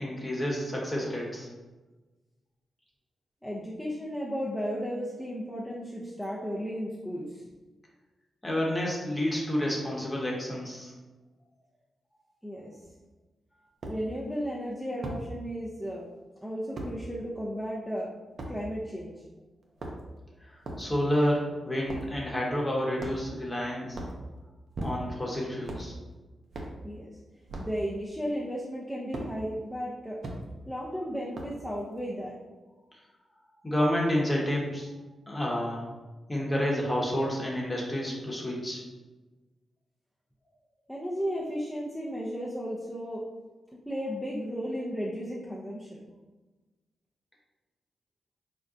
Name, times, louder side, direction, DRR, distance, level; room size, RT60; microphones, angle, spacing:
voice 1, 0.0-1.5 8.4-10.9 20.4-24.0 24.8-25.9 33.6-34.9 35.3-35.9 36.3-38.8, equal, 25° left, -3 dB, 1.0 m, -29 dB
voice 2, 3.4-7.4 12.4-12.8 13.9-16.0 16.4-18.1 18.5-19.2 26.8-27.2 27.6-30.2 30.7-32.4 40.9-43.2 43.9-46.0, equal, 5° left, -6 dB, 0.5 m, -34 dB
sound 1, 12.8-12.9 13.8-14.0 15.0-15.2 16.7-16.9 18.4-18.5 19.6-20.2 20.6-20.9 21.8-22.1 23.0-23.4 23.9-24.2 24.7-25.2 25.6-25.9 26.5-26.8 27.5-27.7 29.1-29.3 30.2-30.4 31.3-31.6, right 1 dB, 65° right, 0.5 m, -37 dB
3.7 x 2.1 x 2.5 m, 1.2 s
supercardioid pair, 45°, 0 cm